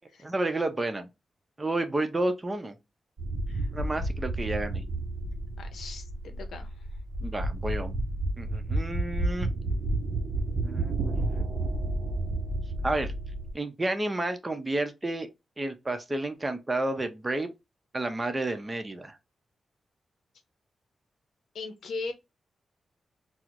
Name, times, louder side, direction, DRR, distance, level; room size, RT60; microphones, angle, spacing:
voice 1, 0.2-1.1 1.6-2.8 3.7-4.8 7.2-8.0 8.4-9.5 10.6-11.4 12.8-13.1 13.5-15.3 15.6-17.5 17.9-19.2, right 2 dB, 25° right, 0.6 m, -31 dB
sound 1, 3.2-13.5, right 2 dB, 70° right, 0.6 m, -31 dB
voice 2, 5.6-6.7 21.5-22.1, left 3 dB, 80° left, 0.6 m, -38 dB
4.3 x 2.0 x 2.5 m
cardioid pair, 65°, 0 cm